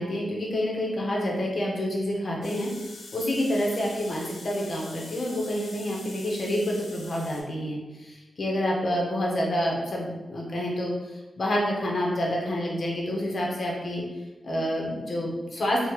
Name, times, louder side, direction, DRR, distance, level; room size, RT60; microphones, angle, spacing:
voice 1, 0.0-2.7 3.1-10.9 11.4-14.0 14.4-15.9, equal, 50° left, -2 dB, 0.7 m, -28 dB
sound 1, 2.4-7.4, left 3 dB, 90° left, 0.4 m, -44 dB
3.1 x 2.0 x 2.8 m, 1.1 s
wide cardioid pair, 95°, 0 cm